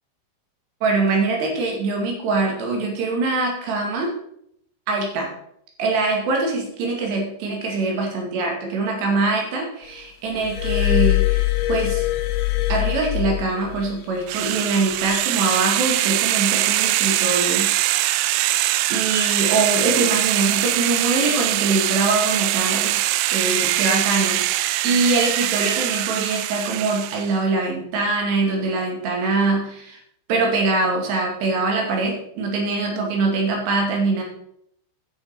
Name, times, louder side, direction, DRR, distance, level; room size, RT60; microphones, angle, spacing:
voice 1, 0.8-4.1 4.9-5.3 5.8-12.1 12.7-17.7 18.2-18.4 18.9-23.0 23.3-24.4 24.8-30.0 30.3-34.2, right 3 dB, 65° right, 0 dB, 4.2 m, -23 dB
Glass, 10.3-13.9 14.9-15.1, left 17 dB, 75° left, 3.6 m, -22 dB
sound 1, 14.3-27.3, right 15 dB, 90° right, 3.2 m, -22 dB
11.0 x 6.2 x 5.8 m, 0.73 s
omnidirectional pair, 5.7 m